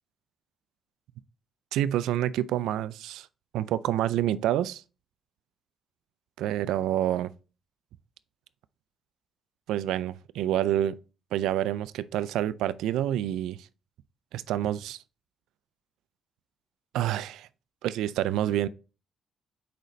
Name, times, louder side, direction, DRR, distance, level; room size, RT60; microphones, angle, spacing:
voice 1, 1.7-3.3 3.5-4.8 6.4-7.3 9.7-11.0 11.3-13.7 14.3-15.0 16.9-17.5 17.8-18.7, right 12 dB, 90° right, 0.4 m, -28 dB
6.6 x 5.1 x 3.2 m
cardioid pair, 90°, 0 cm